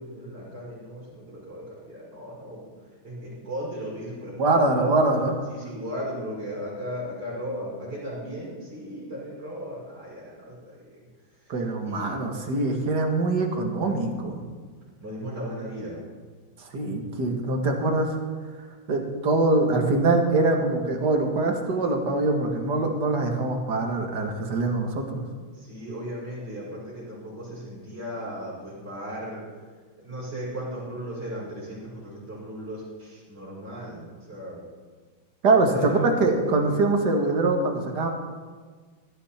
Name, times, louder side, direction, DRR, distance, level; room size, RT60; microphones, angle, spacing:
voice 1, 0.0-2.7 3.0-5.1 5.5-10.8 11.8-12.1 15.0-16.0 25.6-29.4 30.0-34.6 35.5-36.9, equal, 30° right, -7 dB, 6.2 m, -36 dB
voice 2, 4.4-5.4 11.5-14.4 16.6-18.1 18.9-25.2 35.4-38.1, right 2 dB, 55° right, 3 dB, 2.3 m, -23 dB
18.0 x 13.0 x 4.4 m, 1.5 s
omnidirectional pair, 2.3 m